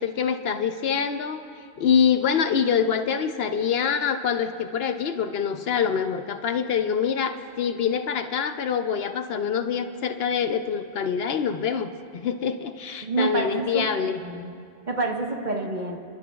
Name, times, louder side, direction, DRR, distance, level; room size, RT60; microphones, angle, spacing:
voice 1, 0.0-1.4 1.8-11.9 12.2-14.2, left 7 dB, 65° left, 8 dB, 0.8 m, -25 dB
voice 2, 13.0-13.8 14.2-14.5 14.9-16.0, right 3 dB, 45° right, 1 dB, 1.3 m, -27 dB
30.0 x 12.0 x 2.3 m, 2.3 s
omnidirectional pair, 1.1 m